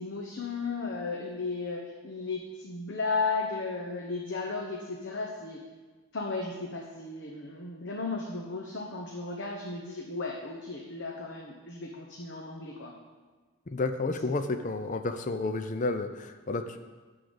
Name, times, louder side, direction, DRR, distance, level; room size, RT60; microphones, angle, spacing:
voice 1, 0.0-5.6 6.1-12.9, left 3 dB, 50° left, -1 dB, 0.9 m, -35 dB
voice 2, 13.7-16.9, left 3 dB, 35° left, 8 dB, 0.5 m, -31 dB
11.5 x 3.9 x 7.8 m, 1.4 s
head